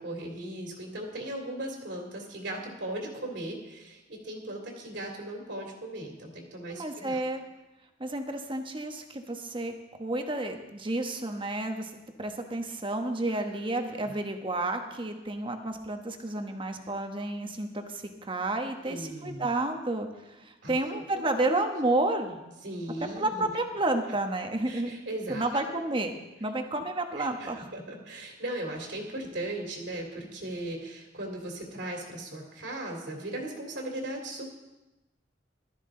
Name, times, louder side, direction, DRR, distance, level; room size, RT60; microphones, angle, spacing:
voice 1, 0.0-7.2 13.3-13.4 13.9-14.0 18.8-19.5 20.6-21.0 22.6-23.5 24.6-25.6 27.1-34.4, right 1 dB, 70° right, 0 dB, 2.8 m, -38 dB
voice 2, 6.7-7.4 8.0-11.9 12.2-20.1 20.4-22.4 23.2-25.0 25.3-26.1 26.4-27.7, right 2 dB, 25° right, 5 dB, 1.2 m, -31 dB
15.0 x 12.5 x 3.8 m, 1.0 s
head